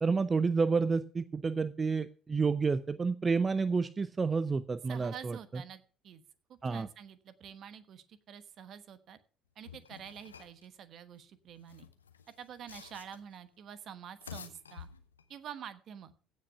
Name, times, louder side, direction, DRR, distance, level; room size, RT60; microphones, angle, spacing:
voice 1, 0.0-5.4 6.6-6.9, right 4 dB, 25° right, 16 dB, 0.5 m, -29 dB
voice 2, 4.9-6.2 6.5-9.2 9.6-11.9 12.4-14.9 15.3-16.1, right 8 dB, 50° right, 13 dB, 1.1 m, -48 dB
sound 1, 9.6-10.7 11.5-13.4 14.0-15.4, left 7 dB, 85° left, 0.9 m, -50 dB
16.0 x 6.4 x 5.7 m, 0.42 s
figure-of-eight pair, 55°, 0 cm